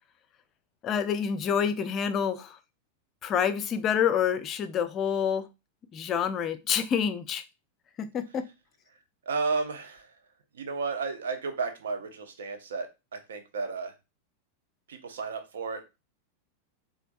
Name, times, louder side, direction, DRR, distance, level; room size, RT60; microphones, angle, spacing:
voice 1, 0.8-2.6 3.2-5.4 5.9-7.4 8.0-8.5, left 8 dB, 30° left, 11 dB, 0.4 m, -27 dB
voice 2, 9.3-10.1 10.5-13.9 14.9-15.8, right 4 dB, 65° right, 7 dB, 0.7 m, -33 dB
4.4 x 2.5 x 2.5 m, 0.25 s
figure-of-eight pair, 90°, 0 cm